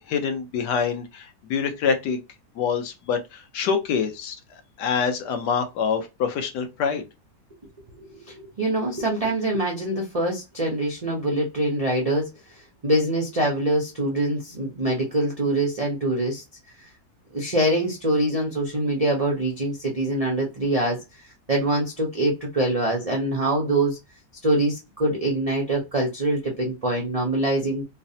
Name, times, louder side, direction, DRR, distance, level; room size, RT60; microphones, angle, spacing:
voice 1, 0.1-2.2 2.6-4.4 4.8-7.0, left 6 dB, 85° left, 1.3 m, -25 dB
voice 2, 7.9-12.3 12.8-16.4 16.8-16.9 17.3-21.0 21.5-24.0 24.4-27.8, right 1 dB, 75° right, 0.3 m, -24 dB
3.2 x 2.1 x 2.6 m
omnidirectional pair, 1.7 m